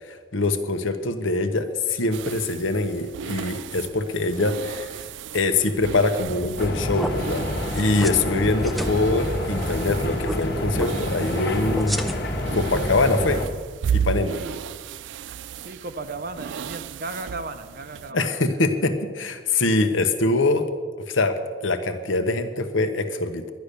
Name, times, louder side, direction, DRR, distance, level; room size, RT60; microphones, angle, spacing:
voice 1, 0.1-5.0 5.3-7.4 7.7-12.0 12.5-13.4 13.9-14.4 18.1-20.7 21.1-23.5, left 2 dB, 80° left, 8 dB, 1.1 m, -24 dB
sound 1, 2.1-18.1, right 8 dB, 65° right, 0.3 m, -35 dB
sound 2, 6.3-6.6 6.9-7.1 7.8-8.2 8.4-8.9 10.2-10.4 10.7-10.9 11.7-12.4, equal, ahead, 0.4 m, -30 dB
sound 3, 6.6-13.5, left 1 dB, 55° left, 1.5 m, -28 dB
voice 2, 14.3-14.6 15.6-18.3 18.7-18.9, right 3 dB, 50° right, 8 dB, 0.8 m, -35 dB
11.5 x 10.0 x 6.7 m, 1.5 s
head